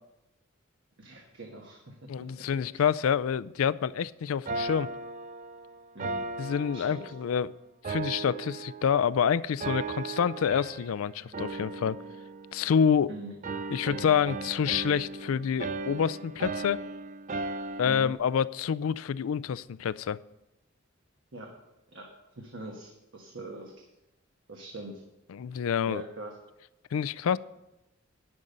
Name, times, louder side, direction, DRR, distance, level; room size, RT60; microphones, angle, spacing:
voice 1, 1.0-2.5 2.7-2.8 5.9-6.3 6.7-7.0 13.1-13.3 17.8-18.1 21.3-21.5 21.9-22.1 22.4-23.7 24.5-25.0 25.9-26.3, right 1 dB, 65° right, 1 dB, 1.3 m, -42 dB
voice 2, 2.1-4.9 6.4-7.5 7.9-12.0 12.5-13.1 13.7-16.8 17.8-20.2 25.3-26.0 26.9-27.4, left 7 dB, 85° left, 19 dB, 0.4 m, -27 dB
sound 1, 4.5-7.4 7.8-9.2 9.6-11.0 11.3-13.1 13.4-18.1, right 3 dB, 35° right, 0.5 m, -37 dB
11.0 x 5.4 x 7.8 m, 0.93 s
head